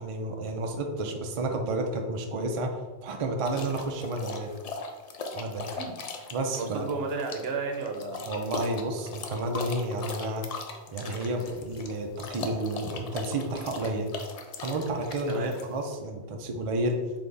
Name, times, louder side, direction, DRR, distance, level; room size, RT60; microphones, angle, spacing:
voice 1, 0.0-2.8 3.0-4.5 5.3-5.7 6.3-6.8 8.3-10.5 10.9-14.1 14.6-17.0, right 2 dB, 50° right, 3 dB, 0.4 m, -31 dB
sound 1, 3.5-15.9, left 4 dB, 60° left, 0.4 m, -39 dB
voice 2, 6.6-8.2 15.3-15.5, right 4 dB, 70° right, 3 dB, 0.9 m, -33 dB
3.4 x 3.4 x 3.8 m, 1.3 s
omnidirectional pair, 1.1 m